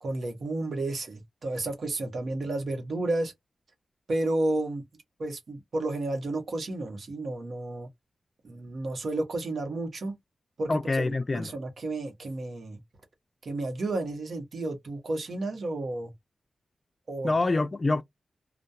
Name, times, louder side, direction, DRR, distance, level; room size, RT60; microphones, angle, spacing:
voice 1, 0.0-3.3 4.1-4.8 5.2-7.9 8.4-10.1 10.6-12.8 13.4-16.1 17.1-17.3, right 2 dB, 65° right, 0.9 m, -32 dB
voice 2, 10.7-11.5 17.2-18.0, left 3 dB, 35° left, 0.4 m, -26 dB
2.2 x 2.2 x 2.7 m
cardioid pair, 80°, 0 cm